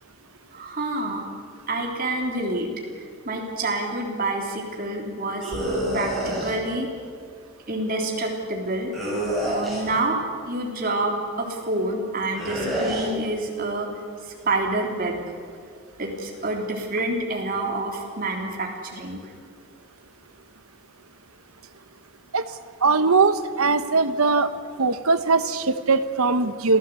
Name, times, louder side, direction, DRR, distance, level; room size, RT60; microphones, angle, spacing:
voice 1, 0.5-1.3 1.7-2.7 3.2-5.5 5.9-6.9 7.7-8.9 9.5-10.2 10.5-13.9 14.5-15.2 16.0-19.2, right 2 dB, 40° right, 0 dB, 3.6 m, -27 dB
sound 1, 5.4-6.5 8.9-10.0 12.4-13.1, equal, ahead, 7.2 m, -27 dB
voice 2, 22.8-24.5 24.8-26.8, right 4 dB, 80° right, 11 dB, 1.2 m, -20 dB
26.0 x 15.5 x 8.4 m, 2.1 s
head